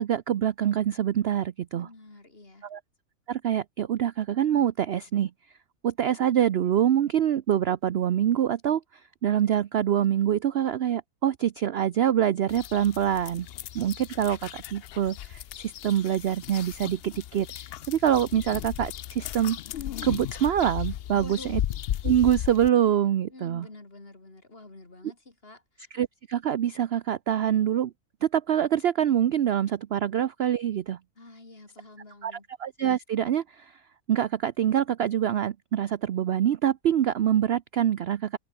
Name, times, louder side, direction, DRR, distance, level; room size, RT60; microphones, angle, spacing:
voice 1, 0.0-1.9 2.6-2.8 3.3-5.3 5.8-8.8 9.2-13.5 13.7-17.5 17.9-19.6 20.0-21.6 22.0-23.7 25.9-27.9 28.2-31.0 32.2-33.7 34.1-38.4, right 10 dB, 60° right, 0.7 m, -25 dB
voice 2, 1.7-2.7 21.1-21.6 23.3-25.9 31.2-32.5, left 2 dB, 40° left, 3.7 m, -47 dB
sound 1, 12.5-22.7, left 12 dB, 90° left, 0.5 m, -36 dB
omnidirectional pair, 1.6 m